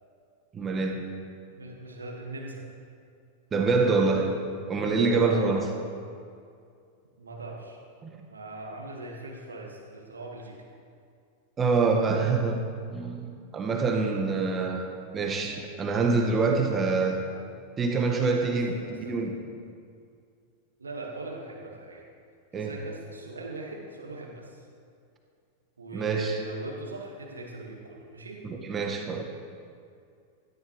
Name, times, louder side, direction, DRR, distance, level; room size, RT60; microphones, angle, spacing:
voice 1, 0.5-1.0 3.5-4.3 4.7-5.6 8.0-8.1 11.6-12.6 12.9-14.8 15.1-17.2 17.8-19.3 22.5-22.7 25.9-26.4 28.4-29.2, right 4 dB, 20° right, 2 dB, 1.6 m, -25 dB
voice 2, 1.6-2.6 5.2-5.6 7.2-7.8 8.3-10.6 16.7-16.8 17.9-19.2 20.8-22.0 22.5-24.6 25.8-28.4, right 2 dB, 75° right, -1 dB, 1.9 m, -40 dB
17.0 x 14.0 x 3.3 m, 2.3 s
figure-of-eight pair, 90°, 0 cm